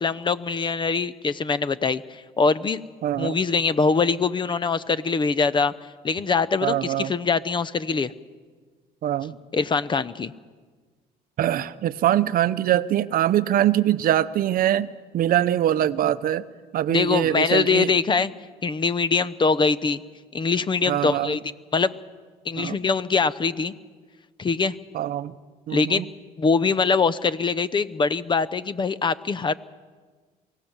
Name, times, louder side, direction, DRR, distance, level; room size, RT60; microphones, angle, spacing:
voice 1, 0.0-2.8 3.2-5.7 6.0-8.1 9.5-10.3 16.9-18.3 18.6-20.0 20.3-21.4 21.7-21.9 22.4-23.7 24.4-24.7 25.7-26.0 26.4-29.5, left 4 dB, 30° left, 17 dB, 0.7 m, -23 dB
voice 2, 3.0-3.4 6.6-7.1 9.0-9.4 11.4-14.9 15.1-16.4 16.7-17.9 20.9-21.4 22.6-22.8 24.9-25.3 25.7-26.0, right 12 dB, 60° right, 14 dB, 0.7 m, -23 dB
24.5 x 17.0 x 7.3 m, 1.4 s
cardioid pair, 110°, 17 cm